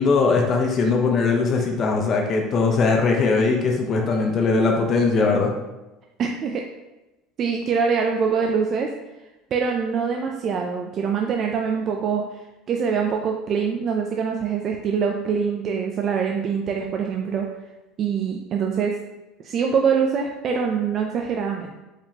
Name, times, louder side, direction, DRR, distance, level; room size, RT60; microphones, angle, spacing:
voice 1, 0.0-5.5, left 4 dB, 40° left, 2 dB, 0.6 m, -20 dB
voice 2, 6.2-6.7 7.4-8.9 9.5-17.5 18.0-18.9 19.4-21.8, right 6 dB, 40° right, 2 dB, 0.4 m, -24 dB
4.7 x 3.6 x 2.8 m, 1.0 s
supercardioid pair, 125°, 0 cm